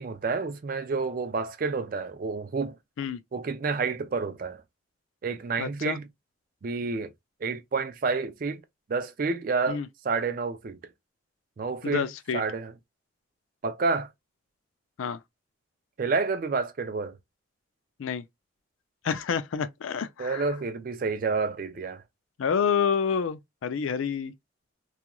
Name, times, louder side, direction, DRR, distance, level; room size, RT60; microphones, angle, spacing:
voice 1, 0.0-2.7 3.3-4.6 5.2-6.0 6.6-7.1 7.4-8.6 8.9-10.8 11.6-12.1 12.3-12.7 13.6-14.1 16.0-17.2 20.2-22.0, right 4 dB, 45° right, 0.4 m, -29 dB
voice 2, 5.6-6.0 9.7-9.9 11.8-12.4 15.0-15.2 18.0-18.2 19.0-20.5 22.4-24.3, left 6 dB, 90° left, 0.4 m, -28 dB
2.9 x 2.4 x 2.3 m
head